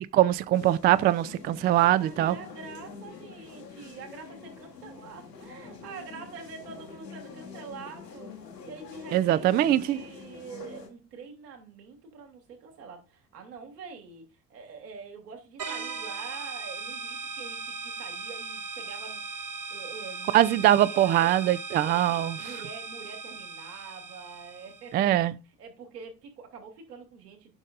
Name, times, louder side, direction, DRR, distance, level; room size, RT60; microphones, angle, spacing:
voice 1, 0.1-2.3 9.1-10.0 20.3-22.3 24.9-25.3, right 13 dB, 25° right, 0.3 m, -22 dB
sound 1, 0.5-10.9, left 5 dB, 85° left, 1.6 m, -46 dB
voice 2, 2.0-8.3 8.6-21.3 21.8-27.5, right 5 dB, 70° right, 2.5 m, -45 dB
sound 2, 15.6-25.0, right 4 dB, 40° right, 1.4 m, -38 dB
12.0 x 6.3 x 2.5 m
figure-of-eight pair, 55°, 49 cm